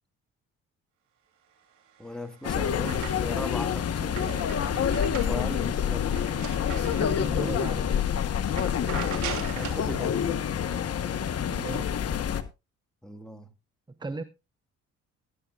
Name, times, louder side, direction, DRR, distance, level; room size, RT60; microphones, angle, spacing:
sound 1, 1.9-3.5 3.9-7.5 7.9-8.1 8.4-9.9, right 8 dB, 80° right, 3.1 m, -40 dB
voice 1, 2.0-4.5 5.2-6.3 9.5-10.2 13.0-13.5, left 1 dB, ahead, 1.7 m, -38 dB
sound 2, 2.4-12.4, left 8 dB, 55° left, 1.2 m, -27 dB
voice 2, 6.8-8.1 11.5-12.0 14.0-14.2, right 3 dB, 15° right, 0.7 m, -36 dB
18.5 x 9.7 x 2.4 m
cardioid pair, 90°, 30 cm